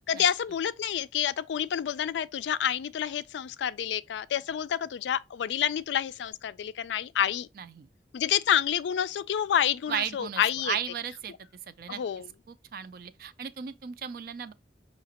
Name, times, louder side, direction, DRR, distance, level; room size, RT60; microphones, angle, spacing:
voice 1, 0.1-7.5 8.1-10.8 11.9-12.3, left 9 dB, 85° left, 0.3 m, -28 dB
voice 2, 7.6-7.9 9.9-11.3 11.7-12.0 12.5-14.5, right 7 dB, 55° right, 0.4 m, -35 dB
5.7 x 2.8 x 2.9 m
head